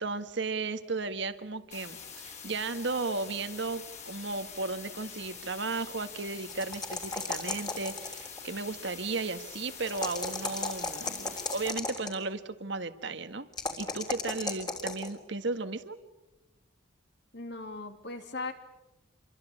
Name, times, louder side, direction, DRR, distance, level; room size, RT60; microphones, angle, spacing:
voice 1, 0.0-2.0 2.2-13.5 13.8-16.0, right 3 dB, 60° right, 10 dB, 1.7 m, -35 dB
sound 1, 1.7-11.7, left 6 dB, 35° left, 5.1 m, -45 dB
sound 2, 6.5-8.4 9.8-12.2 13.5-15.1, left 3 dB, 20° left, 3.6 m, -34 dB
voice 2, 17.3-18.5, left 3 dB, 55° left, 7 dB, 2.8 m, -38 dB
27.5 x 23.0 x 8.6 m, 1.0 s
head